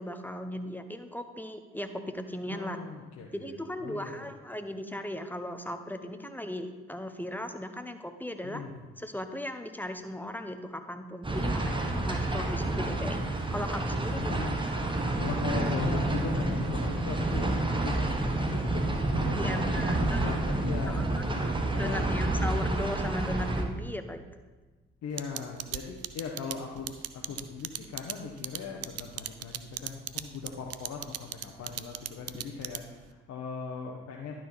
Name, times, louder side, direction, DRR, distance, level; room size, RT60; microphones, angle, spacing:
voice 1, 0.0-2.8 3.3-8.6 9.0-13.3 13.5-14.4 19.3-20.4 20.9-21.5 21.8-24.3, left 1 dB, 5° left, 8 dB, 0.8 m, -37 dB
voice 2, 2.5-4.3 8.4-8.9 11.5-11.8 14.1-14.5 15.1-21.1 21.7-22.0 25.0-34.3, left 5 dB, 60° left, 0 dB, 1.0 m, -39 dB
sound 1, 11.2-23.6, right 2 dB, 15° right, 1.2 m, -29 dB
sound 2, 25.2-33.1, right 12 dB, 55° right, 0.5 m, -36 dB
11.5 x 4.4 x 4.2 m, 1.3 s
hypercardioid pair, 45°, 30 cm